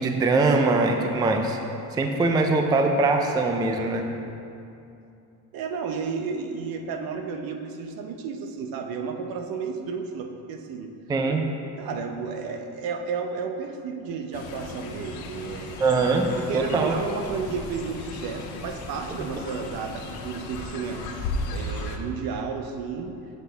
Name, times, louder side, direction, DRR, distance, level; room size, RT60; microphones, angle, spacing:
voice 1, 0.0-1.6 1.9-4.0 11.1-11.5 15.8-16.3 16.5-17.0, right 3 dB, 10° right, 4 dB, 0.3 m, -22 dB
voice 2, 5.5-10.9 11.8-15.8 16.1-21.1 21.5-23.2, right 5 dB, 65° right, 5 dB, 0.8 m, -32 dB
Fowl, 14.3-22.0, left 3 dB, 85° left, 0.9 m, -36 dB
7.9 x 7.4 x 3.9 m, 2.7 s
cardioid pair, 150°, 37 cm